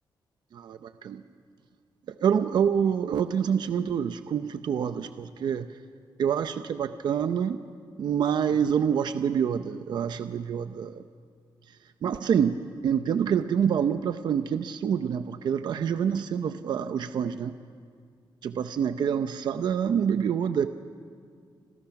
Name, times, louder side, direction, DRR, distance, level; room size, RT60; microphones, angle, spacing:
voice 1, 0.5-1.2 2.2-5.7 6.2-7.6 8.0-11.0 12.0-17.5 18.4-20.7, right 8 dB, 60° right, 10 dB, 0.7 m, -26 dB
29.5 x 26.5 x 5.9 m, 2.1 s
wide cardioid pair, 180°, 8 cm